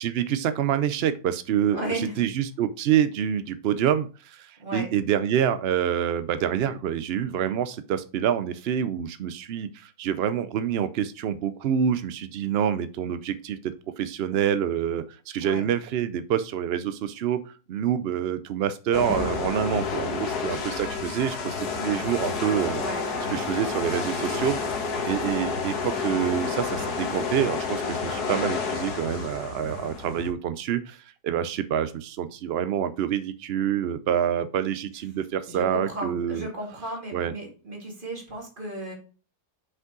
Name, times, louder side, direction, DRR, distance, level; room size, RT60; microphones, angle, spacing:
voice 1, 0.0-22.8 23.3-24.6 25.1-36.5 37.1-37.3, right 9 dB, 75° right, 12 dB, 0.5 m, -27 dB
voice 2, 1.7-2.2 4.6-4.9 15.4-15.7 22.8-23.0 35.5-38.9, right 1 dB, 35° right, 0 dB, 2.2 m, -34 dB
sound 1, 18.9-30.3, left 4 dB, 85° left, 1.7 m, -30 dB
6.0 x 5.3 x 3.7 m, 0.36 s
omnidirectional pair, 1.6 m